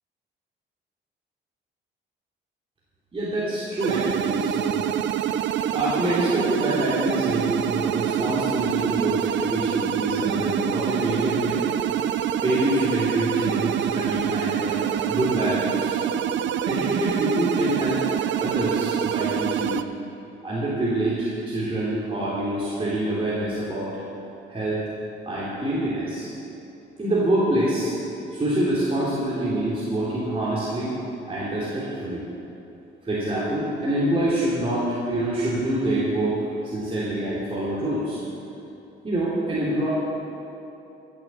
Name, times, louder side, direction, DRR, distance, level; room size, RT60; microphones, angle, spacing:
voice 1, 3.1-4.9 5.7-11.6 12.4-16.0 16.6-18.0 18.4-19.8 20.4-23.9 24.5-24.8 25.2-26.3 27.0-27.9 28.3-30.9 31.3-32.2 33.0-38.2 39.0-39.9, right 1 dB, 30° right, -8 dB, 3.1 m, -26 dB
sound 1, 3.8-19.8, right 10 dB, 70° right, 0.5 m, -26 dB
15.5 x 7.6 x 7.4 m, 2.9 s
cardioid pair, 90°, 20 cm